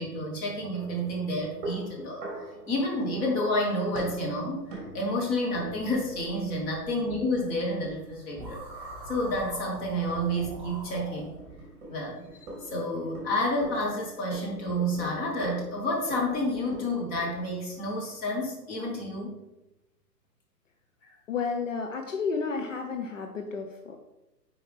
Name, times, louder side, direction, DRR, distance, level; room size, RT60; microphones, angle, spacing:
voice 1, 0.0-2.2 2.7-11.4 11.9-12.3 12.6-19.3, left 1 dB, 15° left, -2 dB, 1.3 m, -30 dB
sound 1, 0.7-18.3, right 1 dB, 25° right, 2.1 m, -44 dB
sound 2, 8.3-11.6, right 1 dB, 5° right, 1.6 m, -42 dB
voice 2, 21.3-24.0, left 5 dB, 50° left, 3 dB, 0.8 m, -32 dB
8.1 x 4.9 x 3.5 m, 0.94 s
figure-of-eight pair, 130°, 49 cm